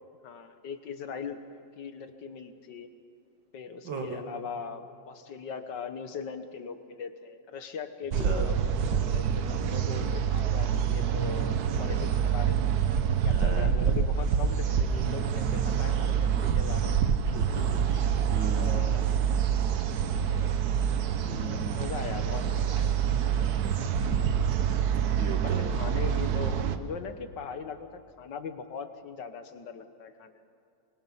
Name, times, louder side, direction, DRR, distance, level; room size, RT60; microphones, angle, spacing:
voice 1, 0.2-2.9 3.5-12.7 13.2-17.4 18.6-19.1 20.2-20.6 21.5-22.9 23.2-23.4 23.8-23.9 24.2-24.4 25.3-30.4, left 6 dB, 65° left, 9 dB, 1.8 m, -40 dB
voice 2, 3.8-4.2 8.2-8.5 13.2-13.7 17.2-18.8 21.2-21.8 23.6-23.8 25.2-25.7, right 3 dB, 75° right, 3 dB, 3.0 m, -37 dB
sound 1, 8.1-26.8, right 8 dB, 60° right, 1.4 m, -27 dB
25.0 x 22.0 x 5.7 m, 2.6 s
omnidirectional pair, 2.1 m